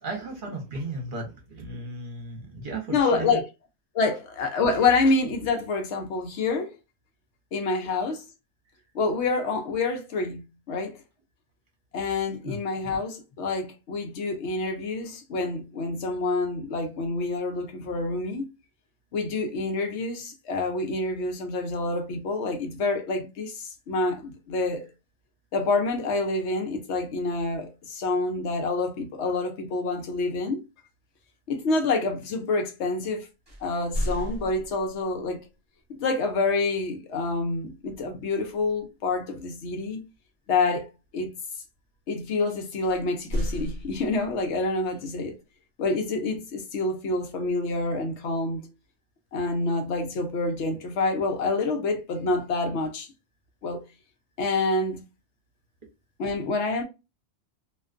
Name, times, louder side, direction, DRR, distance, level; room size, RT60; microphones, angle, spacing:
voice 1, 0.0-3.4 12.4-12.6 12.8-12.9, right 2 dB, 50° right, 0.9 m, -35 dB
voice 2, 2.9-3.5 3.9-6.7 7.5-8.2 8.9-11.0 11.9-18.5 19.1-24.9 25.5-30.6 31.5-33.3 33.6-35.4 35.9-40.0 40.5-40.9 41.1-41.3 42.1-45.4 45.8-48.7 49.3-53.1 53.6-53.8 54.4-55.0 56.2-56.8, left 3 dB, 75° left, 0.9 m, -27 dB
sound 1, 33.5-35.1 37.8-38.2 38.6-38.8 42.8-44.5, equal, 25° right, 0.9 m, -33 dB
2.5 x 2.2 x 2.4 m
omnidirectional pair, 1.2 m